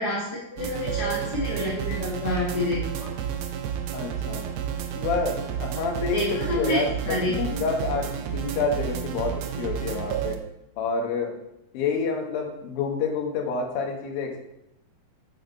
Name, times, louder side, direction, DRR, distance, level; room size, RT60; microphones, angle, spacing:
voice 1, 0.0-3.1 6.1-7.3, left 1 dB, 30° left, -8 dB, 2.4 m, -28 dB
sound 1, 0.6-10.4, right 9 dB, 80° right, 2.6 m, -31 dB
voice 2, 3.9-4.5 5.0-10.4 10.8-11.4 11.7-14.4, left 4 dB, 80° left, 3 dB, 3.0 m, -28 dB
8.9 x 8.0 x 4.1 m, 0.85 s
omnidirectional pair, 4.2 m